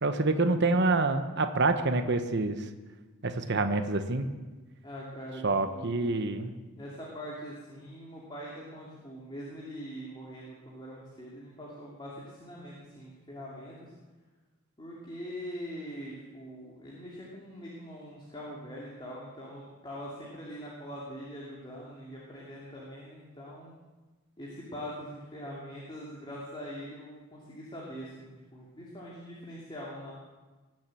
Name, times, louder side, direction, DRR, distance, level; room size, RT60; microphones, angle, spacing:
voice 1, 0.0-2.6 3.2-4.3 5.4-6.5, right 3 dB, 50° right, 8 dB, 1.0 m, -27 dB
voice 2, 4.8-6.2 6.7-13.9 14.8-23.7 24.4-30.1, equal, 20° left, -5 dB, 2.6 m, -43 dB
19.5 x 7.5 x 7.7 m, 1.2 s
head